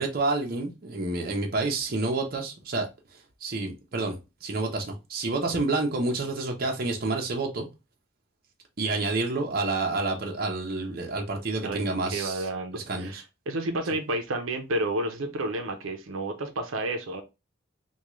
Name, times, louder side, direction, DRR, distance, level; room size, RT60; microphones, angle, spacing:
voice 1, 0.0-2.9 3.4-7.7 8.8-12.5 12.7-13.2, right 3 dB, 45° right, 0.7 m, -29 dB
voice 2, 12.1-17.2, right 1 dB, 85° right, 0.7 m, -31 dB
3.6 x 2.3 x 3.0 m
head